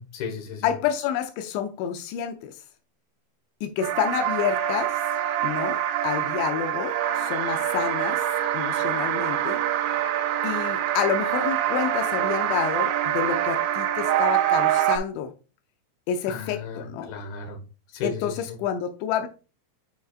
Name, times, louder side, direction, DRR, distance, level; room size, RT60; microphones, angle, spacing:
voice 1, 0.0-0.7 16.3-17.6 17.9-18.6, left 5 dB, 65° left, 2 dB, 2.9 m, -35 dB
voice 2, 0.6-2.5 3.6-5.0 5.4-8.2 8.5-9.6 10.4-15.3 16.1-17.1 18.0-19.3, left 9 dB, 90° left, 6 dB, 2.5 m, -29 dB
sound 1, 3.8-15.0, right 11 dB, 80° right, 3.4 m, -25 dB
9.2 x 4.7 x 2.4 m, 0.33 s
omnidirectional pair, 6.0 m